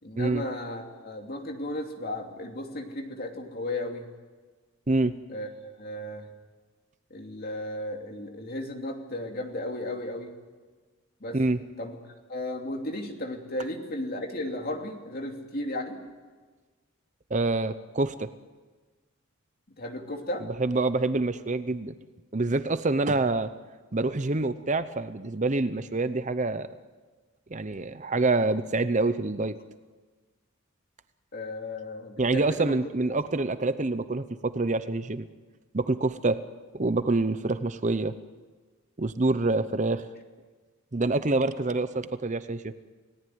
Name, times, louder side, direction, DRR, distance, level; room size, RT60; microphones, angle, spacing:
voice 1, 0.0-4.1 5.3-6.3 7.1-10.3 11.2-11.4 11.8-12.0 12.3-16.0 19.8-20.5 31.3-32.8 33.1-33.2, left 1 dB, 45° left, 3 dB, 3.0 m, -35 dB
voice 2, 17.3-18.3 20.6-21.9 22.3-23.5 23.9-26.7 27.5-29.5 32.2-35.3 35.7-36.4 36.7-38.1 39.0-40.0 40.9-42.7, right 2 dB, 35° right, 12 dB, 0.7 m, -26 dB
29.5 x 17.5 x 9.5 m, 1.4 s
head